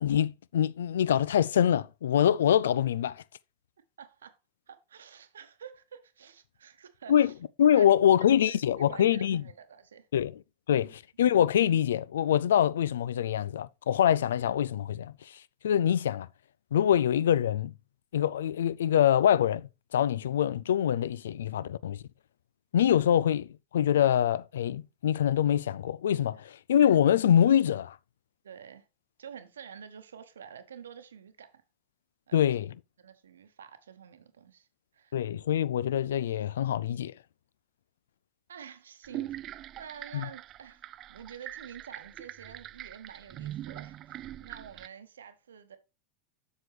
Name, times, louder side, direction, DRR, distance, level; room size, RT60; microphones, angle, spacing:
voice 1, 0.0-3.2 7.1-7.3 7.6-9.4 10.1-10.3 10.7-10.9 11.2-15.1 15.6-16.3 16.7-17.7 18.1-22.0 22.7-28.0 32.3-32.7 35.1-37.1 40.1-40.3, left 10 dB, 70° left, 0.3 m, -24 dB
voice 2, 4.0-4.4 4.7-7.3 7.8-7.9 8.2-10.1 10.8-10.9 28.4-28.9 29.2-31.6 32.3-32.6 33.0-34.7 34.9-35.2 38.5-40.8 41.1-45.8, right 8 dB, 75° right, 1.0 m, -48 dB
sound 1, 39.0-44.9, right 13 dB, 40° right, 0.3 m, -42 dB
7.5 x 6.5 x 3.3 m
figure-of-eight pair, 90°, 0 cm